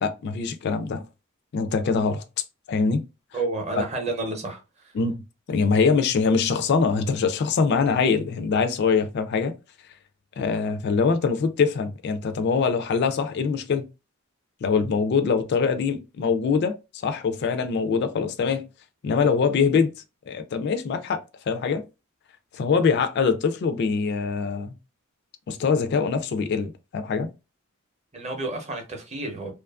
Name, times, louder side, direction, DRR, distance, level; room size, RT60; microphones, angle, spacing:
voice 1, 0.0-1.1 1.5-2.2 2.7-3.0 3.8-3.9 4.9-5.2 5.5-9.6 10.4-13.9 14.6-18.7 19.0-19.9 20.3-21.8 22.5-24.7 25.5-27.3, left 5 dB, 50° left, 0.3 m, -23 dB
voice 2, 3.3-4.9 28.1-29.5, right 2 dB, 30° right, 0.7 m, -30 dB
2.7 x 2.4 x 2.3 m
head